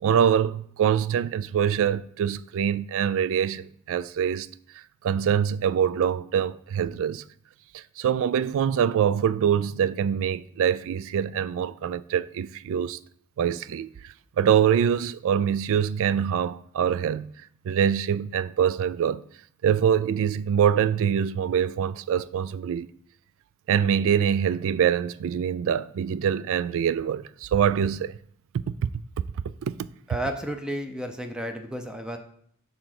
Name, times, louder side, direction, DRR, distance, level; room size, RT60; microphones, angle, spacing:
voice 1, 0.0-4.5 5.0-7.2 7.7-13.0 13.4-13.9 14.4-17.3 17.6-19.2 19.6-22.9 23.7-28.2 28.5-28.9 29.6-29.8, right 8 dB, 65° right, 0.3 m, -24 dB
voice 2, 30.1-32.2, right 1 dB, 5° right, 0.6 m, -32 dB
6.9 x 3.7 x 5.9 m
head